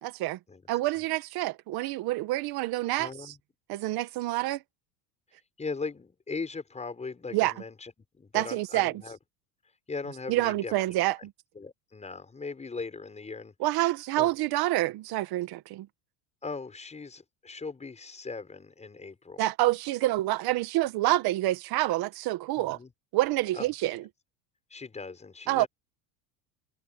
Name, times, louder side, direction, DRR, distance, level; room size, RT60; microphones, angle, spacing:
voice 1, 0.0-0.4 0.7-3.3 3.7-4.6 7.3-7.5 8.3-8.9 10.3-11.3 13.6-15.9 19.4-22.8 23.1-24.0 25.5-25.6, right 16 dB, 60° right, 1.7 m, -27 dB
voice 2, 3.0-3.4 5.6-9.2 9.9-10.7 11.5-13.5 14.2-14.3 16.4-19.4 22.5-22.9 23.5-23.7 24.7-25.7, left 4 dB, 15° left, 6.5 m, -39 dB
cardioid pair, 140°, 42 cm